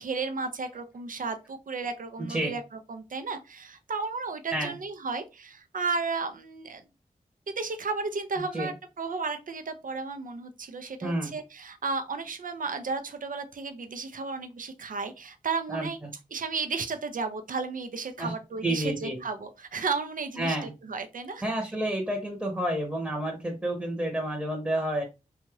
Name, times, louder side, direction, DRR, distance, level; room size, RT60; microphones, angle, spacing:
voice 1, 0.0-2.6 2.9-6.8 7.5-16.0 16.3-21.4, right 4 dB, 70° right, 9 dB, 0.5 m, -33 dB
voice 2, 11.0-11.3 15.7-16.1 18.2-18.3 18.6-19.2 20.4-20.7 21.4-25.0, right 1 dB, 10° right, 1 dB, 0.9 m, -30 dB
2.7 x 2.4 x 3.1 m, 0.27 s
cardioid pair, 45°, 15 cm